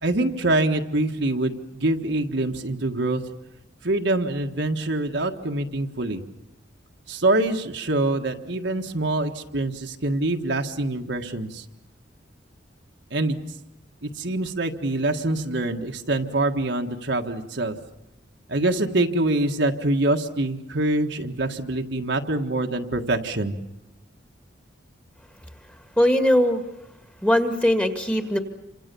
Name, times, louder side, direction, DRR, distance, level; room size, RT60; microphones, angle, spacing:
voice 1, 0.0-3.2 3.8-6.2 7.1-11.6 13.1-13.4 14.0-17.8 18.5-23.5, right 2 dB, 65° right, 4 dB, 1.6 m, -25 dB
voice 2, 26.0-26.6 27.2-28.4, equal, 5° left, 7 dB, 1.8 m, -20 dB
28.5 x 25.5 x 7.0 m, 0.87 s
head